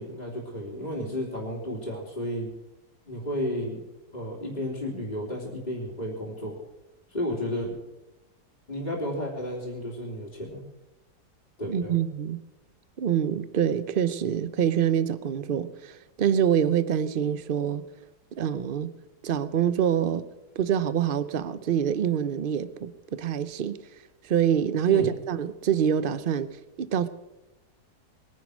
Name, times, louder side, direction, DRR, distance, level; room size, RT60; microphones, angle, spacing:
voice 1, 0.0-2.5 3.1-3.8 4.1-6.6 7.1-7.7 8.7-10.7 11.6-12.0 24.9-25.1, equal, 25° left, 3.1 m, -32 dB
voice 2, 11.7-12.4 13.0-17.8 18.4-18.9 19.2-20.2 20.6-23.8 24.2-26.5 26.8-27.1, right 9 dB, 45° right, 0.7 m, -25 dB
21.5 x 10.5 x 6.3 m
omnidirectional pair, 1.8 m